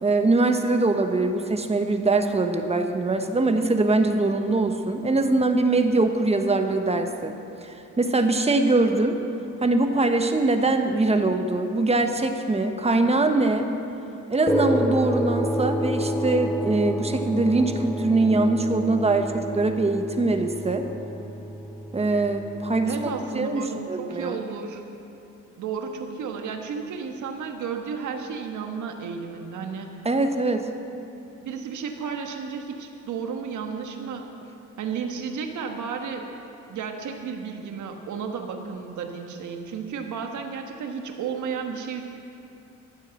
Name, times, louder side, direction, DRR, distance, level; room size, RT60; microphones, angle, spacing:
voice 1, 0.0-7.3 7.6-9.2 9.6-13.7 14.3-20.9 21.9-23.1 23.3-24.3 30.0-30.7, right 2 dB, 20° right, 6 dB, 1.2 m, -22 dB
sound 1, 14.5-23.2, equal, 5° left, 0.7 m, -29 dB
voice 2, 22.9-24.8 25.6-30.0 31.4-34.3 34.8-36.3 36.7-42.0, right 6 dB, 75° right, 4 dB, 1.5 m, -33 dB
13.0 x 9.3 x 7.7 m, 2.9 s
cardioid pair, 90°, 30 cm